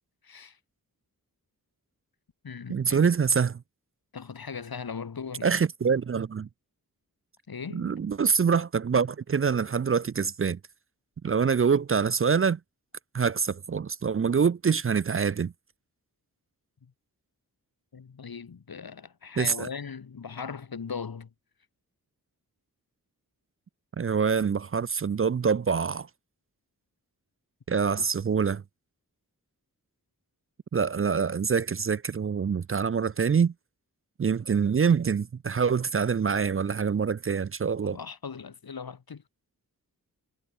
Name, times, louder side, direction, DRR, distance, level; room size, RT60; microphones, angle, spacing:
voice 1, 0.2-0.6 2.4-3.1 4.1-5.6 7.5-7.9 16.8-16.9 17.9-21.3 28.0-28.1 37.8-39.2, left 6 dB, 75° left, 2.5 m, -39 dB
voice 2, 2.7-3.6 5.4-6.5 7.7-10.6 11.2-12.6 13.1-15.5 19.4-19.7 24.0-26.1 27.7-28.6 30.7-33.5 34.2-38.0, right 6 dB, 40° right, 0.5 m, -25 dB
wide cardioid pair, 70°, 36 cm